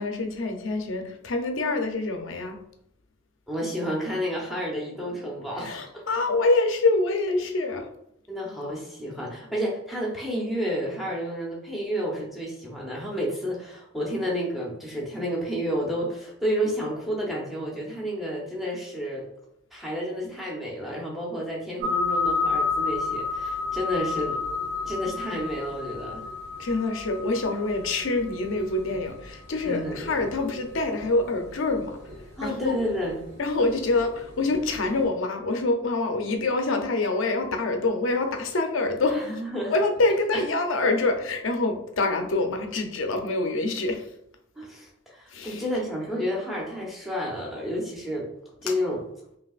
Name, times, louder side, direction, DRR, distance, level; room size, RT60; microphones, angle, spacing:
voice 1, 0.0-2.6 5.6-7.8 26.6-32.0 32.4-32.7 33.4-39.3 39.7-44.0 45.3-45.6, left 2 dB, 65° left, 4 dB, 0.6 m, -26 dB
voice 2, 3.5-6.0 8.3-19.3 19.7-24.6 24.9-26.2 29.6-30.3 32.4-33.2 39.1-39.8 40.3-40.4 44.6-48.3 48.6-49.0, equal, ahead, -3 dB, 0.9 m, -30 dB
sound 1, 21.8-35.0, left 4 dB, 50° right, 1.3 m, -32 dB
5.4 x 2.8 x 2.4 m, 0.76 s
head